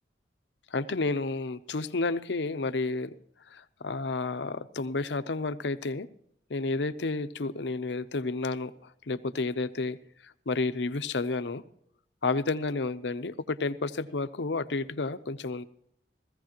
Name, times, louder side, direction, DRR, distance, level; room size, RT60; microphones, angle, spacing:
voice 1, 0.7-3.1 3.5-6.1 6.5-10.0 10.2-11.6 12.2-15.6, left 3 dB, 70° left, 12 dB, 0.7 m, -31 dB
16.5 x 15.0 x 3.0 m, 0.72 s
head